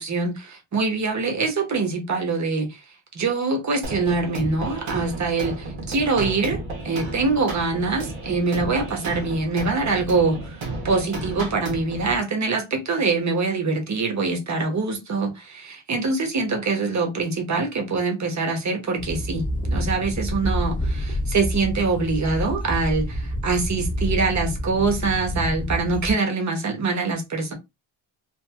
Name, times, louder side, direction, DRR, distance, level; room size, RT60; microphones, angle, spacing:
voice 1, 0.0-2.8 3.1-27.5, right 3 dB, 35° right, 0.8 m, -24 dB
sound 1, 3.8-12.2, right 2 dB, 70° right, 1.0 m, -33 dB
sound 2, 19.0-26.1, equal, 20° left, 0.4 m, -28 dB
2.9 x 2.5 x 2.3 m
wide cardioid pair, 150°, 48 cm